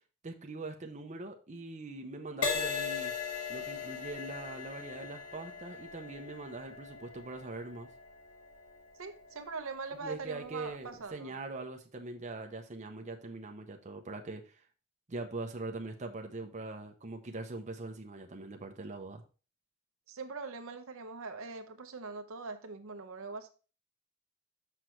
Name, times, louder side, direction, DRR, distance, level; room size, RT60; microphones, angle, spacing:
voice 1, 0.2-3.1 3.5-7.9 10.0-14.6 15.1-19.2, right 2 dB, 35° right, 0.7 m, -42 dB
Crash cymbal, 2.4-10.1 10.7-11.0, left 6 dB, 85° left, 1.3 m, -39 dB
voice 2, 9.0-11.3 20.1-23.5, right 4 dB, 65° right, 0.8 m, -42 dB
6.0 x 6.0 x 3.2 m
head